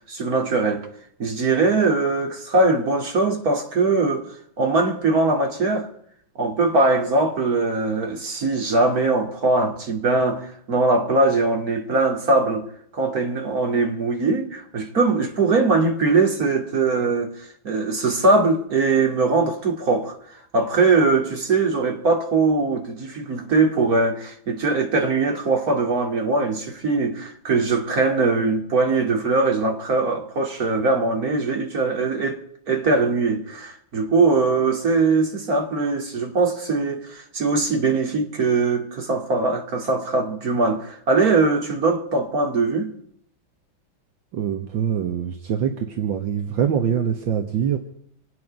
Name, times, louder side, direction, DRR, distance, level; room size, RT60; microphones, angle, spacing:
voice 1, 0.1-0.9 1.2-5.9 6.4-12.7 12.9-17.3 17.6-20.2 20.5-32.4 32.7-42.9, right 3 dB, 45° right, 2.8 m, -21 dB
voice 2, 44.3-47.8, right 8 dB, 70° right, 2.0 m, -24 dB
27.0 x 9.3 x 5.2 m
omnidirectional pair, 2.1 m